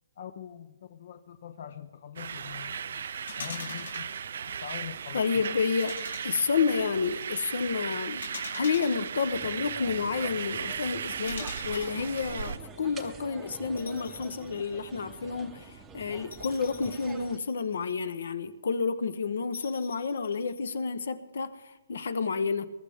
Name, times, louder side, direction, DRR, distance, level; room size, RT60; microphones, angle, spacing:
voice 1, 0.2-3.1 3.4-4.1 4.4-5.6, left 9 dB, 50° left, 0.6 m, -43 dB
sound 1, 2.2-12.6, right 7 dB, 60° right, 0.5 m, -36 dB
sound 2, 3.3-4.1 5.8-6.7 8.2-9.6 11.3-12.0 13.8-14.5 14.9-15.0 16.3-17.9 19.5-20.7, left 5 dB, 90° left, 3.7 m, -44 dB
voice 2, 5.1-6.0 6.2-8.2 8.5-22.7, left 5 dB, 65° left, 1.0 m, -30 dB
sound 3, 9.3-17.4, right 4 dB, 10° right, 0.8 m, -47 dB
21.5 x 12.0 x 3.6 m
hypercardioid pair, 170°, 0 cm